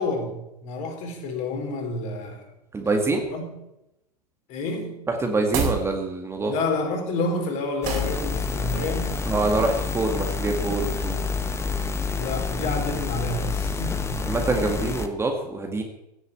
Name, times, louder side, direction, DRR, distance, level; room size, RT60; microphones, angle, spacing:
voice 1, 0.0-2.5 3.3-3.6 4.5-5.1 6.5-9.2 12.2-14.3, left 2 dB, 35° left, 4 dB, 4.4 m, -29 dB
voice 2, 2.7-3.2 5.1-6.5 9.3-11.2 14.2-15.8, right 3 dB, 10° right, 3 dB, 2.0 m, -25 dB
sound 1, 5.4-5.9 7.8-8.2, right 5 dB, 35° right, 4.1 m, -27 dB
sound 2, 7.8-15.1, left 5 dB, 15° left, 1.4 m, -28 dB
17.0 x 7.8 x 8.8 m, 0.89 s
figure-of-eight pair, 100°, 21 cm